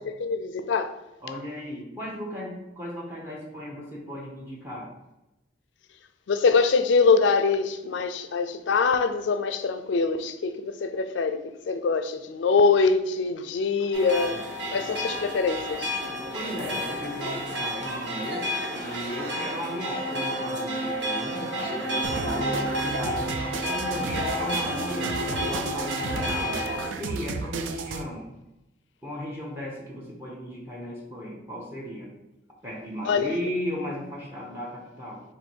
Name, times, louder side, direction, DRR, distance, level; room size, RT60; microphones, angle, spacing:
voice 1, 0.2-0.9 6.3-14.4 14.7-15.9 33.1-33.3, left 4 dB, 70° left, 0.4 m, -24 dB
voice 2, 1.2-4.9 16.3-23.4 23.7-26.7 27.0-28.3 29.0-32.1 32.6-35.2, equal, 10° right, 0.7 m, -36 dB
sound 1, 13.9-26.9, equal, 60° right, 1.0 m, -30 dB
sound 2, 22.0-28.0, right 3 dB, 85° right, 0.4 m, -34 dB
4.4 x 2.6 x 4.3 m
head